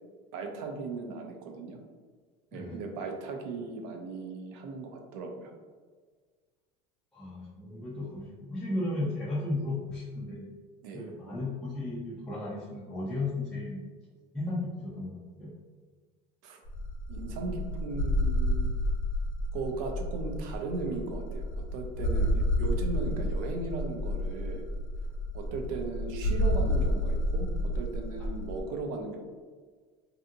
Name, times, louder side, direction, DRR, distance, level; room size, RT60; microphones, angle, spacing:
voice 1, 0.3-1.8 2.5-5.5 10.8-11.1 16.4-16.6 17.1-18.8 19.5-21.4 21.7-24.6 25.3-27.5 27.7-29.2, right 3 dB, 85° right, 3 dB, 0.5 m, -37 dB
voice 2, 7.1-10.5 10.9-13.8 14.3-15.5, left 2 dB, 5° left, -8 dB, 0.4 m, -35 dB
sound 1, 16.6-28.6, left 1 dB, 70° left, 0.5 m, -30 dB
2.7 x 2.5 x 2.5 m, 1.5 s
cardioid pair, 150°, 17 cm